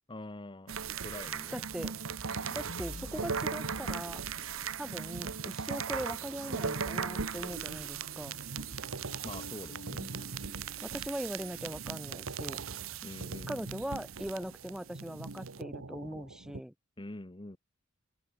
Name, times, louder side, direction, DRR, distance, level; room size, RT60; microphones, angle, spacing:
voice 1, 0.1-0.8 1.0-1.6 2.3-2.6 9.2-10.1 13.0-13.5 17.0-17.6, left 1 dB, 25° left, 1.1 m, -45 dB
sound 1, 0.7-16.6, right 6 dB, 85° right, 1.2 m, -38 dB
voice 2, 1.5-2.0 2.5-4.2 4.8-8.4 10.8-12.6 13.5-16.7, equal, 5° right, 0.6 m, -40 dB
sound 2, 2.3-12.8, left 2 dB, 70° left, 1.3 m, -53 dB
open air
head